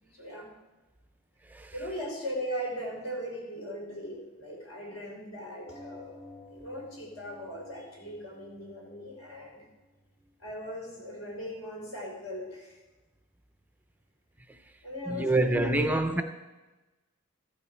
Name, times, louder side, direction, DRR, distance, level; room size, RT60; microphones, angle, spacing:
voice 1, 0.0-0.5 1.7-6.2 6.5-9.6 10.4-12.8 14.8-16.2, equal, 75° left, 3.4 m, -38 dB
sound 1, 5.7-10.7 11.4-11.5 11.8-11.9, left 2 dB, 30° left, 1.5 m, -52 dB
voice 2, 15.1-16.2, right 2 dB, 10° right, 0.4 m, -26 dB
14.0 x 5.6 x 5.4 m
head